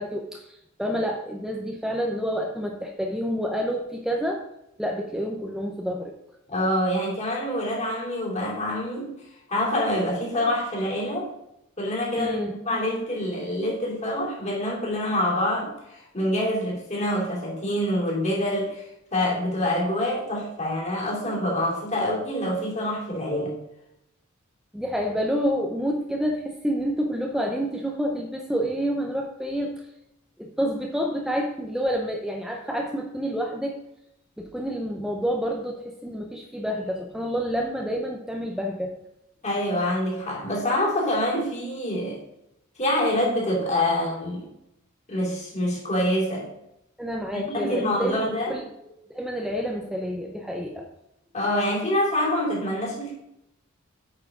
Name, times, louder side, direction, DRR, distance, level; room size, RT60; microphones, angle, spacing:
voice 1, 0.0-4.4 4.8-6.1 12.2-12.6 22.0-22.1 24.7-29.7 30.4-33.7 34.4-35.8 36.0-38.9 47.0-48.7 49.1-50.9, equal, ahead, 0 dB, 0.6 m, -28 dB
voice 2, 6.5-9.1 9.5-11.3 11.8-23.6 39.4-42.2 42.8-44.5 45.1-46.5 47.3-48.6 51.3-53.1, left 1 dB, 35° left, -3 dB, 2.7 m, -26 dB
8.6 x 5.6 x 3.7 m, 0.82 s
head